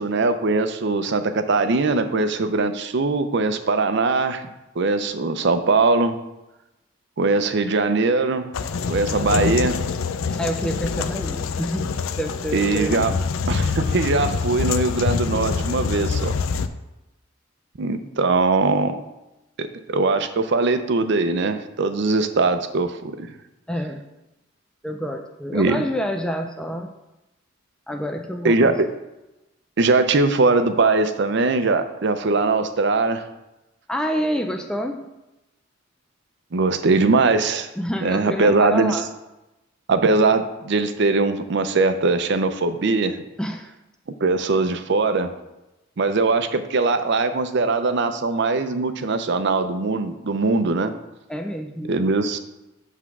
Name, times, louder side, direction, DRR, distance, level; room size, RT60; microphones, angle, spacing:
voice 1, 0.0-4.5 4.8-6.2 7.2-8.5 8.9-9.8 12.5-13.1 13.5-16.3 17.8-19.0 19.6-23.3 25.5-25.8 28.4-28.9 29.8-33.2 36.5-37.7 38.0-39.0 39.9-43.2 44.2-45.3 46.0-50.9 51.9-52.4, right 3 dB, 60° right, 9 dB, 0.6 m, -21 dB
sound 1, 8.5-16.7, left 5 dB, 85° left, 0.4 m, -25 dB
voice 2, 10.3-13.2 23.7-24.1 24.8-26.9 27.9-28.7 33.9-35.1 37.8-39.1 43.4-43.7 51.3-51.9, equal, 5° left, 4 dB, 0.4 m, -28 dB
7.9 x 3.6 x 6.0 m, 0.98 s
head